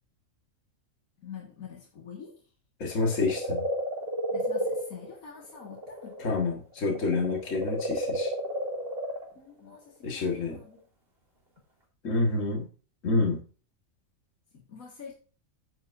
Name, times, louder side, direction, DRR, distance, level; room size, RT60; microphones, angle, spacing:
voice 1, 1.2-2.4 4.3-6.2 9.3-10.8 14.5-15.1, left 6 dB, 90° left, -2 dB, 2.2 m, -46 dB
voice 2, 2.8-3.6 6.2-8.3 10.0-10.6 12.0-12.7 13.0-13.4, left 3 dB, 65° left, 0 dB, 2.0 m, -28 dB
sound 1, 2.9-6.5 6.7-9.3 10.4-10.5, equal, 45° right, 2.8 m, -32 dB
9.8 x 8.7 x 2.6 m, 0.37 s
omnidirectional pair, 1.4 m